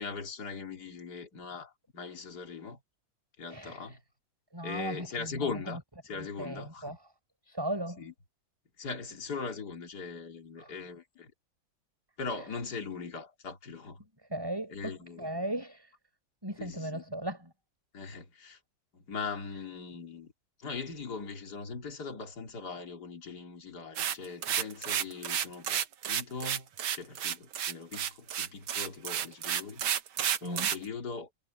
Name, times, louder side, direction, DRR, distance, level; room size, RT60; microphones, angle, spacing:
voice 1, 0.0-2.8 3.4-4.0 4.6-7.0 8.0-8.1 8.8-11.3 12.2-14.0 14.7-15.3 16.6-17.0 17.9-18.6 18.9-20.3 20.6-26.7 26.9-29.8 30.4-31.3, left 5 dB, 50° left, 3.5 m, -40 dB
voice 2, 3.5-4.0 4.5-5.8 6.1-7.0 7.5-8.0 10.6-10.7 14.3-15.9 16.4-17.5 30.4-30.7, right 1 dB, 10° right, 6.3 m, -37 dB
sound 1, 24.0-30.8, right 9 dB, 85° right, 2.0 m, -31 dB
omnidirectional pair, 2.2 m